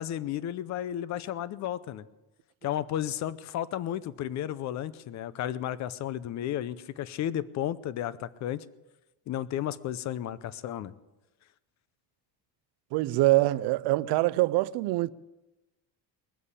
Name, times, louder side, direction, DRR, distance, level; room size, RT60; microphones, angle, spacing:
voice 1, 0.0-2.0 2.6-8.6 9.3-10.9, left 11 dB, 40° left, 0.6 m, -33 dB
voice 2, 12.9-15.1, right 18 dB, 60° right, 0.6 m, -24 dB
20.5 x 7.7 x 8.2 m
cardioid pair, 180°, 45 cm